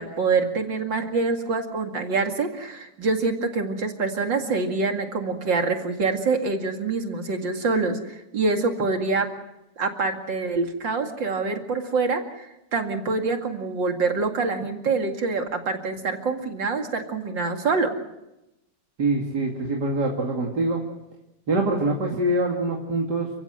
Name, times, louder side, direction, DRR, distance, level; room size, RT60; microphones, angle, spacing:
voice 1, 0.0-9.3 9.8-17.9, right 4 dB, 80° right, 4 dB, 3.0 m, -25 dB
voice 2, 19.0-20.8 21.5-23.3, right 2 dB, 60° right, 0 dB, 3.1 m, -24 dB
30.0 x 15.5 x 7.8 m, 0.91 s
omnidirectional pair, 2.0 m